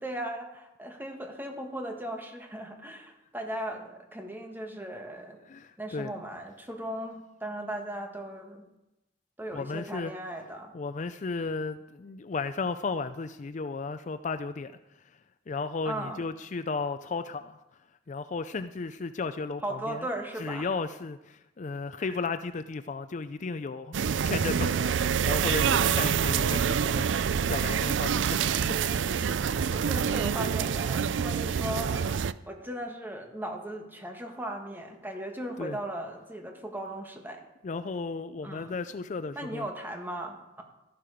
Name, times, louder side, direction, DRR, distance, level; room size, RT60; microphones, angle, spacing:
voice 1, 0.0-5.4 5.8-8.6 9.4-10.7 15.8-16.2 19.6-20.7 22.0-22.2 29.5-37.4 38.4-38.7 39.4-40.6, right 1 dB, 10° right, 3 dB, 1.7 m, -37 dB
voice 2, 5.5-6.1 9.5-10.1 10.7-14.8 15.0-15.2 15.5-17.6 18.1-20.1 20.4-24.0 24.2-28.4 28.7-28.8 35.6-35.8 37.6-39.7, left 4 dB, 40° left, 11 dB, 0.4 m, -34 dB
sound 1, 23.9-32.3, right 7 dB, 75° right, 0.4 m, -26 dB
14.0 x 11.5 x 5.1 m, 0.93 s
head